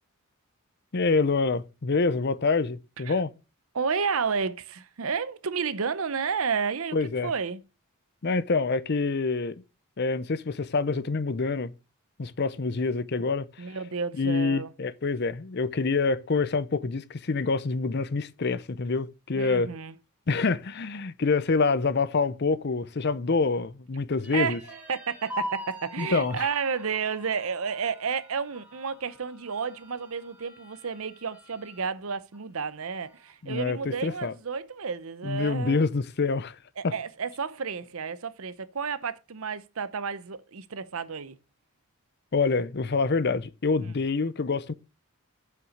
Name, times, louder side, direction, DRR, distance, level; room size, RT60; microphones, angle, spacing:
voice 1, 0.9-3.3 6.9-7.3 8.2-9.6 10.0-11.7 12.2-13.6 14.2-19.8 20.3-24.6 26.0-26.5 33.4-34.3 35.2-36.6 36.8-36.9 42.3-44.7, left 4 dB, 50° left, 0.6 m, -26 dB
voice 2, 3.7-7.6 13.6-14.7 19.3-19.9 24.3-35.8 36.8-41.4 43.8-44.0, right 6 dB, 70° right, 0.7 m, -31 dB
when the toys go winding down, 24.2-31.9 32.3-32.4 32.8-33.5, left 1 dB, 10° right, 2.2 m, -43 dB
7.7 x 5.9 x 6.5 m
head